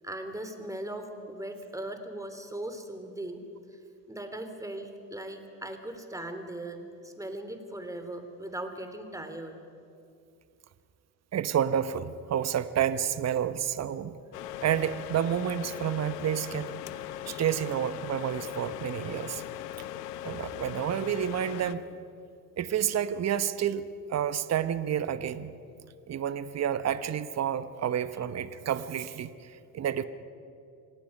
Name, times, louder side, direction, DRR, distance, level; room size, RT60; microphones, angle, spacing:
voice 1, 0.0-3.4 4.1-9.6, right 1 dB, 5° right, 7 dB, 3.0 m, -39 dB
voice 2, 11.3-14.1 14.6-16.7 17.3-19.4 20.2-21.8 22.6-25.5 26.1-30.0, right 9 dB, 35° right, 13 dB, 1.0 m, -30 dB
sound 1, 14.3-21.8, left 11 dB, 85° left, 0.9 m, -39 dB
27.5 x 18.0 x 5.4 m, 2.4 s
hypercardioid pair, 60°, 47 cm